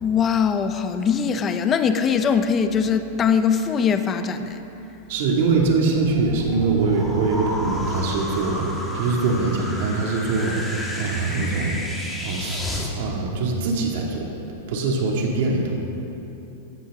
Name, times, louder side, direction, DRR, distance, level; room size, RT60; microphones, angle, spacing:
voice 1, 0.0-4.6, left 6 dB, 25° left, 9 dB, 0.7 m, -21 dB
voice 2, 5.1-11.8 12.2-12.6 12.9-14.3 14.7-15.7, right 3 dB, 65° right, -1 dB, 2.5 m, -23 dB
sound 1, 5.5-12.9, left 1 dB, 5° left, 1.9 m, -32 dB
16.0 x 12.0 x 3.8 m, 3.0 s
supercardioid pair, 140°, 0 cm